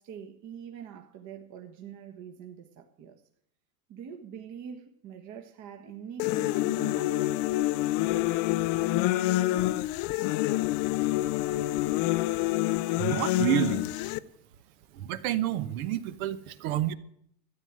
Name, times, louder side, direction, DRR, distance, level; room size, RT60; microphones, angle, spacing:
voice 1, 0.0-3.2 3.9-7.2, right 8 dB, 40° right, 3 dB, 1.5 m, -44 dB
sound 1, 6.2-14.2, left 16 dB, 40° left, 0.6 m, -27 dB
voice 2, 13.0-13.9 14.9-16.9, right 11 dB, 60° right, 14 dB, 1.2 m, -29 dB
13.0 x 9.7 x 8.9 m, 0.70 s
supercardioid pair, 130°, 47 cm